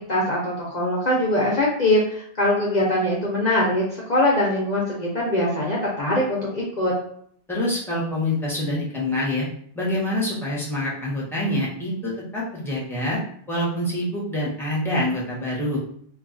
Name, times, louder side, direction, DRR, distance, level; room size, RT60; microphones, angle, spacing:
voice 1, 0.0-6.9, left 1 dB, 50° left, -4 dB, 0.7 m, -22 dB
voice 2, 7.5-9.5 9.7-13.2 13.5-15.8, left 1 dB, ahead, -6 dB, 0.8 m, -26 dB
2.5 x 2.3 x 3.8 m, 0.64 s
omnidirectional pair, 1.1 m